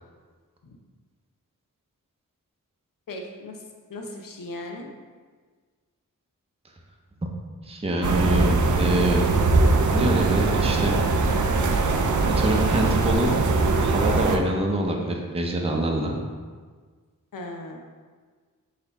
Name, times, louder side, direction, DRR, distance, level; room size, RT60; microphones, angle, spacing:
voice 1, 3.1-3.6 3.9-4.9 17.3-17.8, left 2 dB, 75° left, 2 dB, 0.6 m, -37 dB
voice 2, 7.6-9.3 9.9-11.0 12.3-13.4 13.8-16.1, right 1 dB, 20° right, 0 dB, 0.6 m, -25 dB
sound 1, 8.0-14.4, right 3 dB, 60° right, 0.5 m, -21 dB
4.0 x 2.8 x 4.1 m, 1.5 s
cardioid pair, 45°, 33 cm